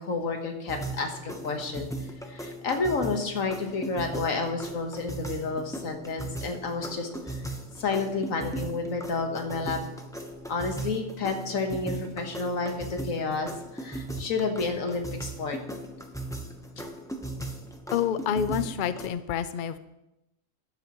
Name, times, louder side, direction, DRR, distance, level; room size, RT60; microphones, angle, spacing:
voice 1, 0.0-7.5 7.7-9.8 10.5-15.6 15.9-16.0 16.8-16.9, left 4 dB, 85° left, 4 dB, 1.7 m, -30 dB
sound 1, 0.7-19.1, right 2 dB, 5° left, 0.7 m, -38 dB
voice 2, 17.9-19.8, left 8 dB, 55° left, 12 dB, 0.6 m, -28 dB
13.0 x 10.5 x 3.1 m, 0.90 s
omnidirectional pair, 1.4 m